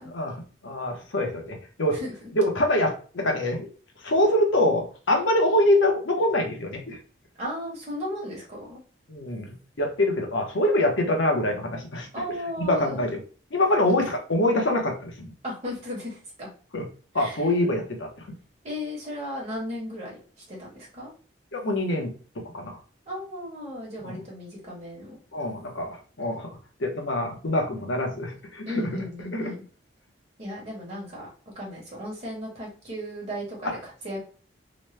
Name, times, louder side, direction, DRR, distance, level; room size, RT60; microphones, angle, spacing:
voice 1, 0.0-2.0 2.3-3.7 4.0-7.0 9.1-12.1 12.6-13.2 13.5-15.3 16.7-16.9 17.1-18.4 21.5-22.1 22.5-22.8 24.0-24.2 25.3-26.5 26.8-29.0 29.3-29.5 33.6-33.7, left 1 dB, 85° left, 2 dB, 0.8 m, -25 dB
voice 2, 1.9-2.3 7.4-8.8 12.1-13.0 15.4-16.5 17.2-17.4 18.6-20.2 20.5-21.1 23.1-25.2 28.7-29.6 30.4-31.3 31.5-34.2, equal, 35° right, -3 dB, 1.1 m, -35 dB
3.0 x 2.1 x 3.1 m, 0.39 s
head